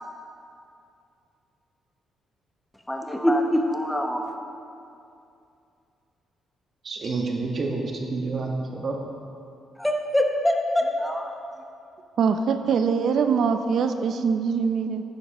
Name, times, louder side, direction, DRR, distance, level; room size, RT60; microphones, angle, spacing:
voice 1, 2.9-4.2 9.8-11.3, left 1 dB, 5° left, 2 dB, 0.9 m, -24 dB
voice 2, 6.8-8.9, right 3 dB, 50° right, 0 dB, 1.4 m, -28 dB
voice 3, 12.2-15.0, right 6 dB, 65° right, 8 dB, 0.5 m, -23 dB
11.0 x 9.1 x 3.0 m, 2.6 s
cardioid pair, 80°, 0 cm